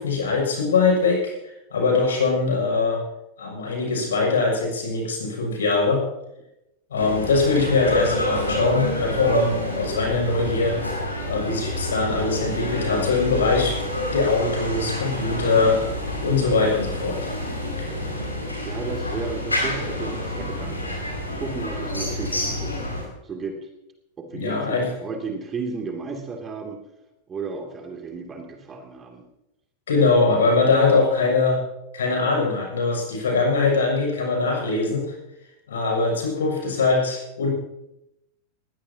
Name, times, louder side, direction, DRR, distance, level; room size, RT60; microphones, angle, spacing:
voice 1, 0.0-1.3 1.7-3.0 3.4-6.0 6.9-10.8 11.2-13.7 14.1-15.8 16.2-17.2 17.8-17.9 24.3-24.9 29.9-31.6 31.9-35.1 35.7-37.5, left 4 dB, 65° left, 0 dB, 6.8 m, -22 dB
sound 1, 7.0-23.0, left 1 dB, 80° left, 5.7 m, -28 dB
voice 2, 18.6-20.9 21.4-22.8 23.2-23.6 24.2-26.8 27.3-29.2, right 4 dB, 20° right, 3 dB, 2.7 m, -33 dB
21.5 x 16.5 x 2.9 m, 0.88 s
figure-of-eight pair, 90°, 0 cm